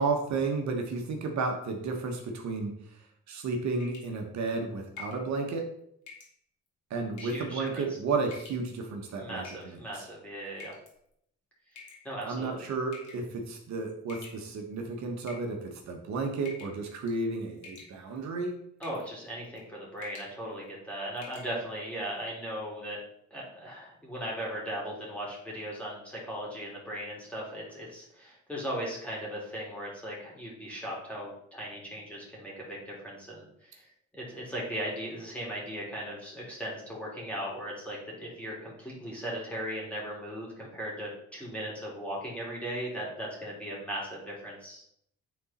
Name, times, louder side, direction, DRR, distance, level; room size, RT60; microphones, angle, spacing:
voice 1, 0.0-2.7 3.3-5.7 6.9-10.1 12.2-18.6, right 3 dB, 65° right, 3 dB, 1.3 m, -32 dB
sound 1, 3.8-4.2 5.0-5.3 6.1-6.3 7.1-7.5 8.3-8.7 9.4-9.9 10.6-10.9 11.8-12.3 12.9-13.3 14.1-14.7 15.2-15.9 16.4-16.8 17.1-17.3 17.6-18.2 18.8-19.1 19.4-19.7 20.0-20.3 20.7-20.8 21.2-21.5, left 5 dB, 70° left, 2.1 m, -48 dB
voice 2, 7.2-7.8 9.2-10.7 12.0-12.7 18.8-23.0 23.3-33.4 34.1-44.8, equal, 5° left, -4 dB, 2.9 m, -38 dB
8.4 x 4.2 x 4.2 m, 0.72 s
cardioid pair, 90°, 30 cm